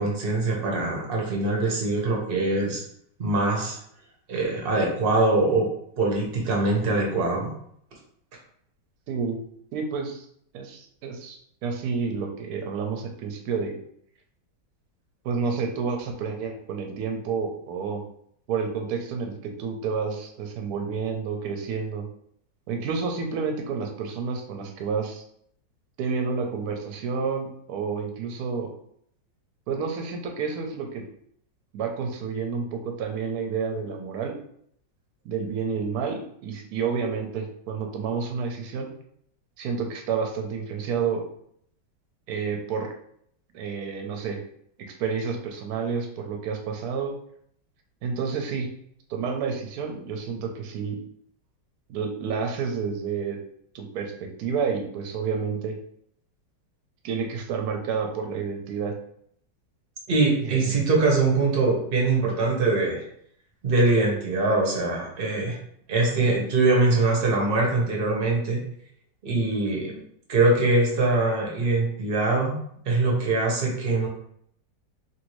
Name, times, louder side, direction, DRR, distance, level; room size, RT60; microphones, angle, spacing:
voice 1, 0.0-2.8 3.2-3.8 4.3-5.7 6.0-7.5 60.1-63.0 63.6-65.6 65.9-68.6 69.2-70.0 70.3-72.6 72.8-74.1, right 2 dB, 45° right, -1 dB, 0.8 m, -23 dB
voice 2, 9.1-9.4 9.7-10.3 10.5-13.7 15.2-18.0 18.5-22.0 22.7-25.2 26.0-28.7 29.7-31.0 31.7-34.3 35.2-38.9 39.6-41.2 42.3-42.9 43.5-44.4 44.9-47.1 48.0-48.7 49.1-51.0 51.9-53.4 53.7-55.7 57.0-58.9 60.4-60.8, right 5 dB, 70° right, 2 dB, 1.0 m, -30 dB
3.1 x 2.6 x 3.0 m, 0.67 s
omnidirectional pair, 1.9 m